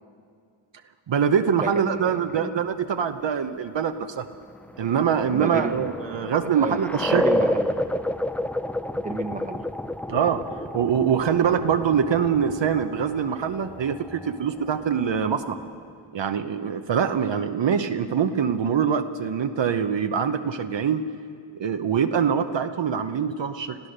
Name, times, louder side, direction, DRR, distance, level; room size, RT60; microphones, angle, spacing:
voice 1, 1.1-4.3 4.8-7.2 10.1-10.5 10.7-15.6 16.1-21.1 21.5-23.8, right 7 dB, 60° right, 8 dB, 0.9 m, -24 dB
voice 2, 1.6-2.6 5.3-5.8 6.1-6.3 6.5-6.8 7.1-7.7 8.9-9.6, right 3 dB, 15° right, 5 dB, 1.2 m, -32 dB
sound 1, 4.4-15.8, left 1 dB, 5° left, 0.4 m, -30 dB
26.0 x 15.0 x 6.6 m, 2.3 s
cardioid pair, 80°, 50 cm